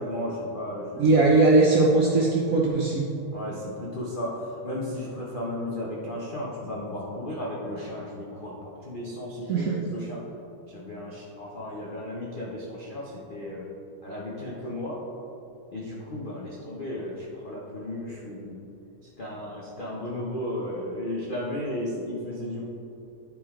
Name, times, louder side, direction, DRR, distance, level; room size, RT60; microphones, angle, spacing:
voice 1, 0.0-1.1 3.3-10.3 10.7-13.7 14.0-15.0 15.7-18.6 19.0-22.6, left 1 dB, 70° left, -5 dB, 0.4 m, -34 dB
voice 2, 1.0-3.1 9.5-9.7, right 3 dB, 75° right, -3 dB, 0.7 m, -20 dB
10.5 x 4.8 x 3.7 m, 2.8 s
omnidirectional pair, 2.3 m